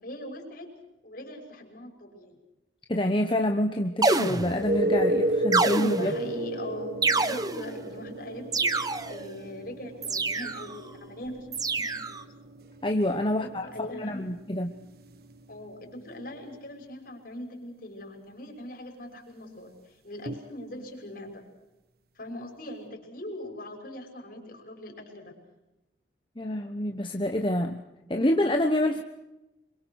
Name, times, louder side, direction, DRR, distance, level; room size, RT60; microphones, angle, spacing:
voice 1, 0.0-0.7 1.0-2.4 6.0-12.3 13.3-14.2 15.5-21.5 22.1-25.4, left 1 dB, 50° left, 3 dB, 6.0 m, -41 dB
voice 2, 2.9-6.1 12.8-14.7 26.4-27.8 28.1-29.0, left 1 dB, 25° left, 5 dB, 1.2 m, -27 dB
sound 1, 4.0-4.8 5.5-6.3 7.0-7.8 8.5-9.3 10.0-10.8 11.5-12.2, right 3 dB, 20° right, 1.1 m, -27 dB
sound 2, 4.4-16.0 20.3-20.4, right 1 dB, 55° right, 1.5 m, -33 dB
26.5 x 23.5 x 6.5 m, 0.96 s
head